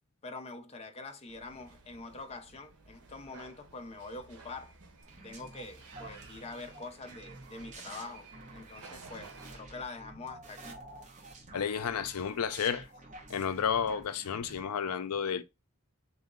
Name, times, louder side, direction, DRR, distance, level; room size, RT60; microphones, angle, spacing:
voice 1, 0.2-4.7 5.2-10.9, left 3 dB, 25° left, 0.5 m, -45 dB
sound 1, 1.3-9.6, right 4 dB, 85° right, 1.0 m, -54 dB
sound 2, 5.0-14.6, right 2 dB, 35° right, 0.9 m, -50 dB
voice 2, 11.5-12.9 13.3-15.4, left 7 dB, 85° left, 0.5 m, -31 dB
3.8 x 2.7 x 3.6 m
head